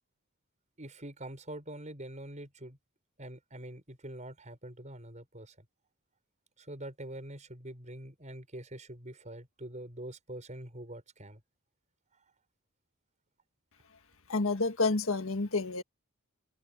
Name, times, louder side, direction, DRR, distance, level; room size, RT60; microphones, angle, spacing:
voice 1, 0.8-2.8 3.2-5.5 6.6-11.4, right 1 dB, 35° right, 6.8 m, -45 dB
voice 2, 14.3-15.8, left 3 dB, 65° left, 1.7 m, -29 dB
head